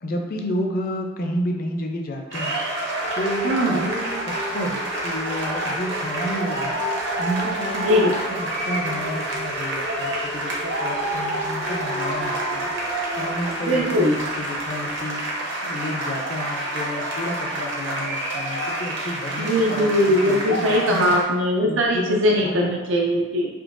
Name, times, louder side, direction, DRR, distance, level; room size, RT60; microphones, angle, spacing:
voice 1, 0.0-2.8 3.1-6.8 7.2-12.7 13.1-15.2 15.6-21.1 21.6-22.8, equal, 50° left, 3 dB, 0.4 m, -30 dB
sound 1, 2.3-21.2, right 1 dB, 65° right, 0.8 m, -28 dB
sound 2, 3.0-15.0, equal, 10° right, 0.4 m, -37 dB
voice 2, 3.4-3.9 7.7-8.1 13.6-14.2 19.4-23.5, equal, 80° right, -1 dB, 0.4 m, -20 dB
3.6 x 2.8 x 2.5 m, 1.3 s
head